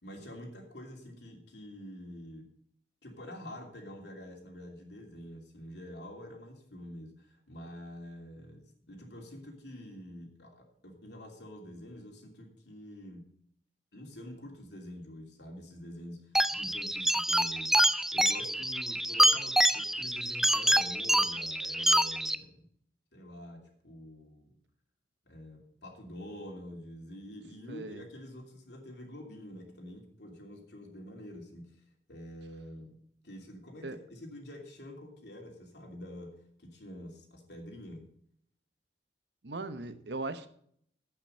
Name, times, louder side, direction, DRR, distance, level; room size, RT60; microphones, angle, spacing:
voice 1, 0.0-2.5 3.0-13.3 13.9-22.7 23.1-24.5 25.3-33.0 33.2-38.0, equal, 65° left, 2 dB, 2.9 m, -47 dB
sound 1, 16.3-22.4, equal, ahead, 0.3 m, -26 dB
voice 2, 27.7-28.0 33.8-34.0 39.4-40.5, right 2 dB, 65° right, 12 dB, 0.9 m, -38 dB
10.5 x 8.9 x 5.5 m, 0.65 s
head